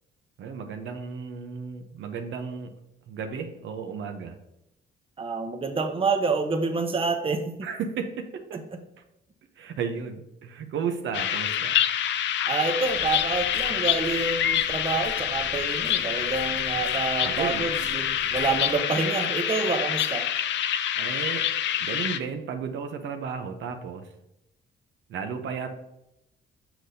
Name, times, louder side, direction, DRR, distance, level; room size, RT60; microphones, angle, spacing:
voice 1, 0.4-2.7 3.1-4.4 7.6-8.6 9.6-11.8 17.2-17.6 21.0-21.5 21.8-24.0 25.1-25.7, right 6 dB, 70° right, 6 dB, 0.8 m, -33 dB
voice 2, 5.2-7.5 8.5-8.6 12.5-20.3, right 4 dB, 30° right, 6 dB, 0.8 m, -28 dB
sound 1, 11.1-22.2, left 10 dB, 65° left, 0.4 m, -27 dB
sound 2, 12.8-18.8, left 1 dB, 40° left, 1.3 m, -45 dB
6.6 x 5.9 x 2.7 m, 0.84 s
cardioid pair, 90°, 20 cm